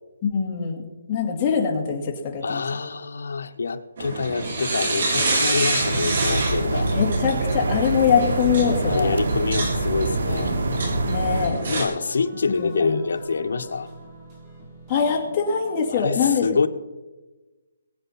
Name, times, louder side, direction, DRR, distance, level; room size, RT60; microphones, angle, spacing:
voice 1, 0.2-0.8 1.1-2.6 6.9-9.1 11.1-11.6 12.5-13.0 14.9-16.5, left 6 dB, 15° left, -2 dB, 2.2 m, -23 dB
voice 2, 2.4-6.9 8.8-10.5 11.7-13.9 15.9-16.7, left 4 dB, 65° left, 5 dB, 1.3 m, -26 dB
sound 1, 4.0-11.8, right 2 dB, 50° right, 4.4 m, -27 dB
sound 2, 5.8-11.5, right 2 dB, 85° right, 1.9 m, -25 dB
sound 3, 6.6-16.0, right 1 dB, 15° right, 3.2 m, -45 dB
22.0 x 8.3 x 4.3 m, 1.2 s
hypercardioid pair, 175°, 0 cm